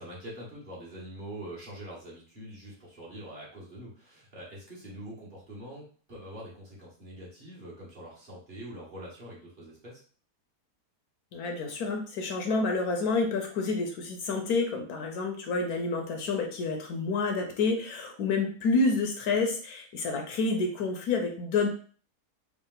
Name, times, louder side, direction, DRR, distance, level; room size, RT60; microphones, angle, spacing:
voice 1, 0.0-10.0, right 1 dB, 35° right, -6 dB, 1.3 m, -44 dB
voice 2, 11.3-21.7, left 3 dB, 70° left, 3 dB, 1.1 m, -29 dB
3.6 x 2.5 x 3.7 m, 0.43 s
omnidirectional pair, 1.7 m